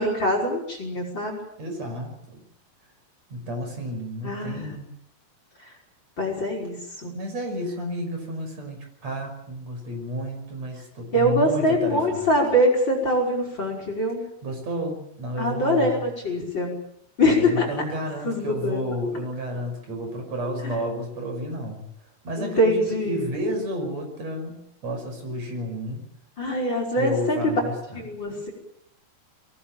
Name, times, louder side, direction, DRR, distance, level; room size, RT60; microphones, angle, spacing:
voice 1, 0.0-1.4 4.2-4.7 6.2-7.1 11.1-14.2 15.4-16.7 17.2-17.7 18.2-18.9 20.6-20.8 22.4-23.2 26.4-27.5 27.9-28.5, equal, 30° left, 2 dB, 5.9 m, -23 dB
voice 2, 1.6-2.4 3.3-4.9 7.1-12.3 14.4-16.0 17.2-21.8 22.2-26.0 27.0-28.0, equal, 40° right, 4 dB, 6.9 m, -31 dB
23.5 x 18.0 x 8.9 m, 0.75 s
omnidirectional pair, 4.5 m